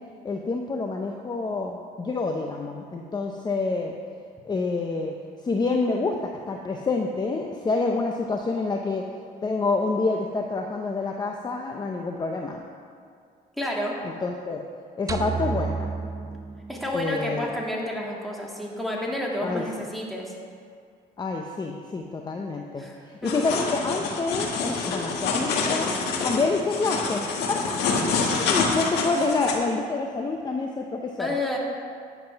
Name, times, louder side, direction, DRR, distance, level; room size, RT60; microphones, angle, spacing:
voice 1, 0.2-3.9 4.4-5.1 5.4-9.0 9.4-12.7 14.0-14.6 15.0-16.0 16.9-17.5 19.4-19.6 21.2-25.9 26.2-27.2 27.5-28.0 28.4-31.4, left 3 dB, 25° left, 2 dB, 0.8 m, -27 dB
voice 2, 13.6-14.0 16.7-20.3 22.8-23.5 31.2-31.6, left 1 dB, ahead, -3 dB, 2.2 m, -30 dB
sound 1, 15.1-17.4, right 5 dB, 20° right, 0.7 m, -31 dB
sound 2, 23.2-29.5, left 4 dB, 80° left, 1.6 m, -27 dB
10.5 x 7.6 x 5.8 m, 2.2 s
cardioid pair, 110°, 17 cm